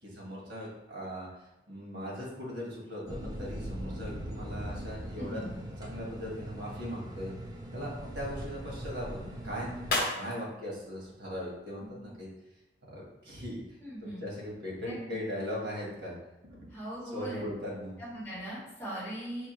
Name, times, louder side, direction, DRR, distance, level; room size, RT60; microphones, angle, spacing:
voice 1, 0.0-1.3 1.7-5.4 5.8-7.3 7.7-12.3 12.9-16.1 16.5-16.6 17.0-18.0, equal, 90° right, -3 dB, 1.4 m, -39 dB
sound 1, 3.1-10.0, right 1 dB, 20° right, 0.5 m, -40 dB
voice 2, 5.2-5.6 11.8-12.0 13.8-14.2 14.8-15.0 16.7-17.4 18.0-19.5, equal, 10° left, -11 dB, 1.3 m, -40 dB
sound 2, 6.2-12.2, left 2 dB, 55° left, 0.7 m, -40 dB
4.5 x 2.5 x 3.0 m, 0.95 s
head